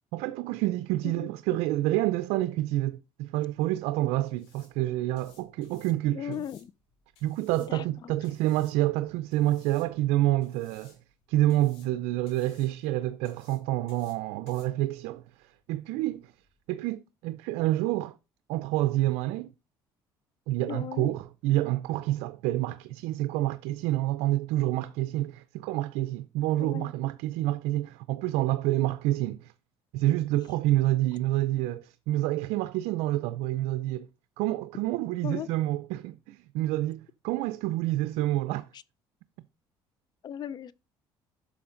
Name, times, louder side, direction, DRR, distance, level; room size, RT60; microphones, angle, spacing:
voice 1, 0.1-6.4 7.2-11.0 11.3-16.3 16.7-18.2 18.5-19.5 20.5-29.5 29.9-34.1 34.4-38.7, right 15 dB, 85° right, 0.5 m, -28 dB
sound 1, 3.3-16.8, left 5 dB, 80° left, 4.9 m, -62 dB
voice 2, 6.1-6.7 7.7-8.1 20.7-21.1 26.6-26.9 35.2-35.5 38.7-38.8 40.2-40.7, left 9 dB, 45° left, 0.5 m, -37 dB
11.0 x 6.3 x 3.8 m
cardioid pair, 105°, 10 cm